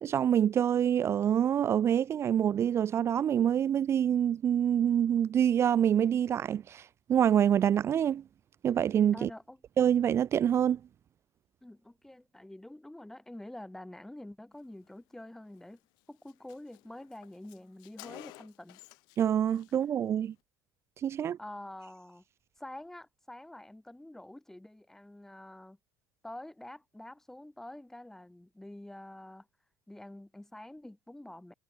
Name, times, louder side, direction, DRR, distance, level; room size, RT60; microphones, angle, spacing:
voice 1, 0.0-8.2 8.6-9.3 9.8-10.8 19.2-20.3 21.0-21.4, right 9 dB, 35° right, 0.5 m, -26 dB
voice 2, 9.1-9.6 11.6-15.8 16.1-18.8 21.4-22.2 22.6-25.8 26.2-29.5 29.9-31.5, left 1 dB, 5° left, 6.2 m, -47 dB
Car, 15.6-15.7 16.0-16.1 16.3-19.2 19.5-19.8, left 25 dB, 70° left, 4.0 m, -52 dB
supercardioid pair, 105°, 7 cm